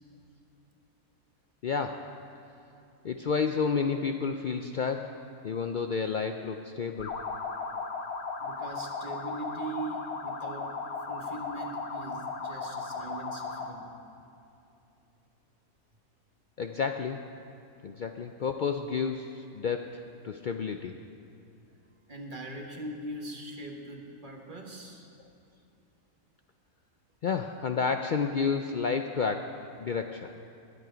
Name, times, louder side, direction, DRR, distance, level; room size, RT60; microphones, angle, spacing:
voice 1, 1.6-2.0 3.0-7.1 16.6-17.2 17.8-20.9 27.2-30.3, left 5 dB, 85° left, 5 dB, 0.4 m, -31 dB
sound 1, 7.0-13.8, left 4 dB, 50° left, 1.2 m, -36 dB
voice 2, 8.4-10.7 11.1-13.9 22.1-25.0, right 2 dB, 35° right, 1 dB, 1.5 m, -41 dB
20.5 x 9.5 x 5.0 m, 2.7 s
omnidirectional pair, 1.5 m